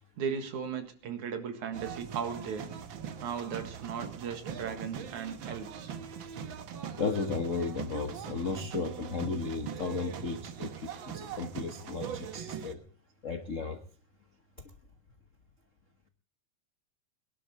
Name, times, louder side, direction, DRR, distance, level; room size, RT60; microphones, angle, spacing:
voice 1, 0.2-2.7 3.2-5.9, right 7 dB, 75° right, 8 dB, 3.2 m, -36 dB
sound 1, 1.7-12.7, right 7 dB, 60° right, 1.4 m, -41 dB
voice 2, 7.0-12.8 13.2-13.8, left 4 dB, 80° left, 7 dB, 0.7 m, -34 dB
22.0 x 11.5 x 4.2 m, 0.39 s
omnidirectional pair, 3.4 m